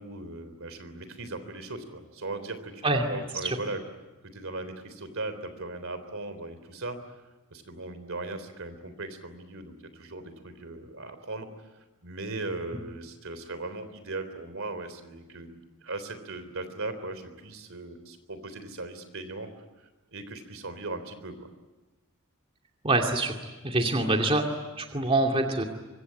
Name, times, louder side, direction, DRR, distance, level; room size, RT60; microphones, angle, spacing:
voice 1, 0.0-2.8 3.1-3.8 4.2-7.0 7.5-11.7 12.0-21.5, right 2 dB, 65° right, 10 dB, 3.6 m, -38 dB
voice 2, 22.8-23.4 23.6-24.5 24.8-25.6, right 2 dB, 25° right, 2 dB, 2.4 m, -25 dB
25.5 x 24.0 x 9.7 m, 1.1 s
head